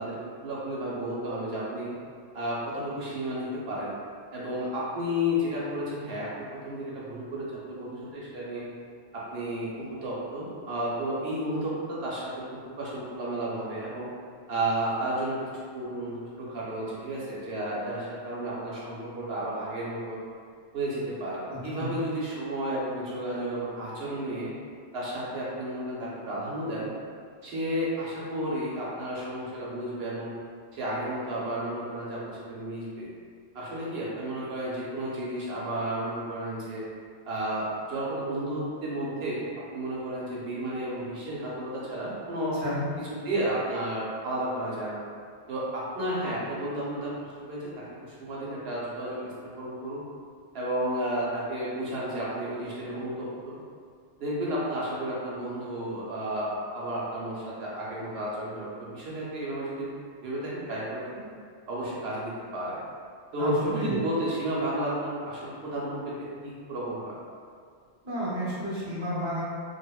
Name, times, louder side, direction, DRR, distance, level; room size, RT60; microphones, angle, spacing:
voice 1, 0.0-1.9 2.3-3.9 4.3-8.6 9.1-14.1 14.5-15.4 15.7-20.2 20.7-24.5 24.9-26.9 27.4-30.3 30.7-33.1 33.5-36.8 37.3-39.4 39.7-42.6 43.0-45.0 45.5-50.0 50.5-53.6 54.2-59.9 60.2-61.2 61.7-62.8 63.3-67.2, right 1 dB, 70° right, -7 dB, 0.8 m, -32 dB
voice 2, 21.5-21.9 42.6-42.8 63.4-63.9 68.0-69.4, equal, 30° right, -8 dB, 0.5 m, -32 dB
2.7 x 2.0 x 2.2 m, 2.1 s
omnidirectional pair, 1.1 m